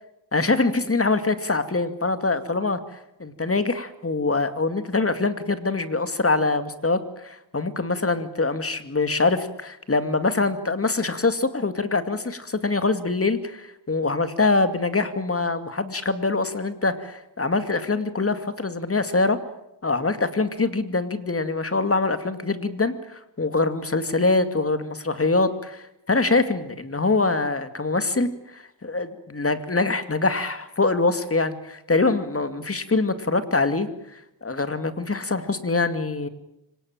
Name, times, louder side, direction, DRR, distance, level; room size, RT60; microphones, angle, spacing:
voice 1, 0.3-2.8 3.2-19.4 19.8-33.9 34.4-36.3, left 3 dB, 30° left, 10 dB, 2.3 m, -24 dB
25.5 x 18.5 x 8.9 m, 0.85 s
cardioid pair, 65°, 44 cm